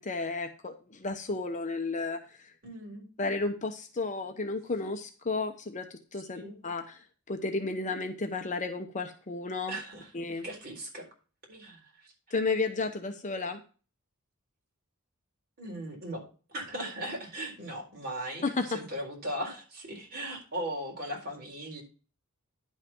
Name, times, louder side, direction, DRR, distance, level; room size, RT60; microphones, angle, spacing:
voice 1, 0.0-2.5 3.2-9.8 10.1-10.5 12.3-13.6 18.4-18.8, left 3 dB, 35° left, 6 dB, 0.9 m, -33 dB
voice 2, 2.6-3.0 6.3-6.6 9.7-10.1 10.4-11.1 11.5-12.1 15.6-21.8, right 1 dB, 45° right, 0 dB, 4.1 m, -38 dB
10.5 x 5.8 x 4.4 m, 0.36 s
head